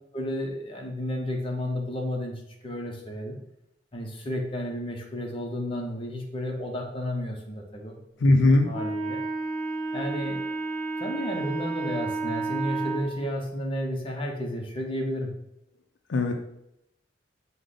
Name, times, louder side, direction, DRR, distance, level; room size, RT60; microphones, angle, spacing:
voice 1, 0.1-3.4 3.9-8.0 8.5-9.2 9.9-10.4 11.0-15.4, left 1 dB, 30° left, 1 dB, 0.7 m, -32 dB
voice 2, 8.2-8.7 16.1-16.3, left 2 dB, 75° left, 4 dB, 0.4 m, -19 dB
Wind instrument woodwind instrument, 8.7-13.1, right 3 dB, 5° left, 1.0 m, -31 dB
5.0 x 2.1 x 3.8 m, 0.82 s
head